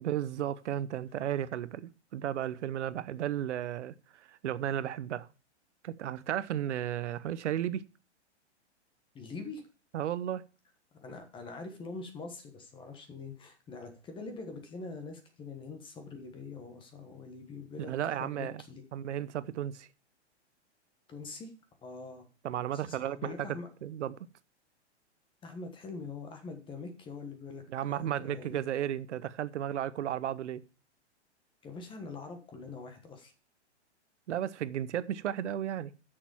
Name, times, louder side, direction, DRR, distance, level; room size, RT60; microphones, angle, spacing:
voice 1, 0.0-5.3 5.8-7.8 9.9-10.4 17.8-18.6 18.9-19.9 22.4-23.5 23.8-24.2 27.7-30.6 34.3-35.9, right 11 dB, 80° right, 0.8 m, -34 dB
voice 2, 9.1-9.6 11.0-18.8 21.1-21.5 21.8-22.3 22.6-23.7 25.4-27.6 27.9-28.6 31.6-33.3, left 4 dB, 15° left, 1.4 m, -44 dB
7.3 x 6.7 x 7.1 m
hypercardioid pair, 155°, 35 cm